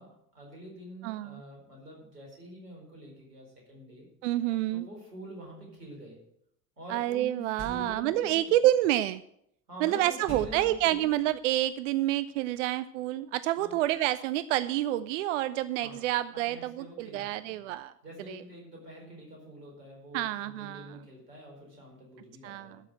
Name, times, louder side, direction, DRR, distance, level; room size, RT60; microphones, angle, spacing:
voice 1, 0.0-4.1 4.7-6.2 6.8-8.5 9.7-11.1 13.6-13.8 15.7-17.6 18.0-22.8, equal, 80° right, -1 dB, 4.8 m, -46 dB
voice 2, 1.0-1.4 4.2-4.9 6.9-9.2 9.8-17.9 18.3-18.4 20.1-21.0 22.4-22.8, right 14 dB, 50° right, 15 dB, 0.5 m, -28 dB
sound 1, 7.6-8.2 10.3-11.3, right 1 dB, 35° left, 4.1 m, -44 dB
12.5 x 6.4 x 7.7 m, 0.73 s
figure-of-eight pair, 75°, 48 cm